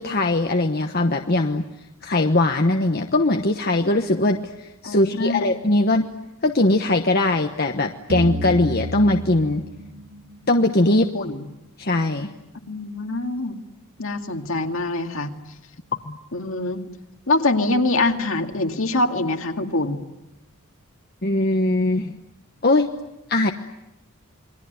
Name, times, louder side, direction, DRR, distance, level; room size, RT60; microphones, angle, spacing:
voice 1, 0.0-1.6 2.0-6.1 6.4-9.6 10.5-11.3 11.8-12.3 16.1-16.2 21.2-22.1 22.6-22.9 23.3-23.5, left 2 dB, 45° left, 4 dB, 1.1 m, -20 dB
voice 2, 4.8-5.5 10.9-11.5 12.7-13.6 14.0-15.4 16.3-16.8 17.3-20.0, left 2 dB, 65° left, 4 dB, 2.3 m, -24 dB
sound 1, 8.1-11.0, equal, 60° right, 1.9 m, -31 dB
28.5 x 22.5 x 9.4 m, 0.92 s
head